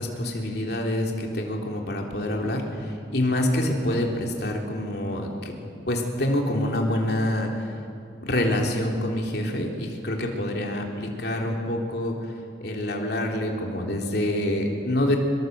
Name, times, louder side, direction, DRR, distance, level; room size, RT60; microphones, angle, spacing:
voice 1, 0.0-5.5 5.9-7.7 8.2-12.3 12.6-15.2, left 1 dB, 65° left, 1 dB, 3.3 m, -26 dB
24.0 x 22.5 x 8.0 m, 2.7 s
head